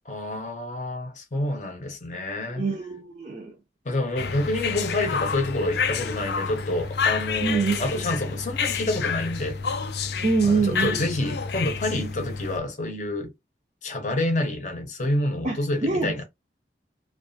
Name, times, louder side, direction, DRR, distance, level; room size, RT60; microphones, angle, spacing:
voice 1, 0.1-2.6 3.8-9.6 10.4-13.3 13.8-16.2, left 1 dB, 40° left, 0.7 m, -28 dB
voice 2, 2.5-3.5 7.4-8.0 10.2-11.1 15.4-16.2, right 4 dB, 40° right, 0.4 m, -25 dB
sound 1, 4.2-12.6, left 5 dB, 65° left, 0.4 m, -29 dB
2.4 x 2.3 x 2.5 m
head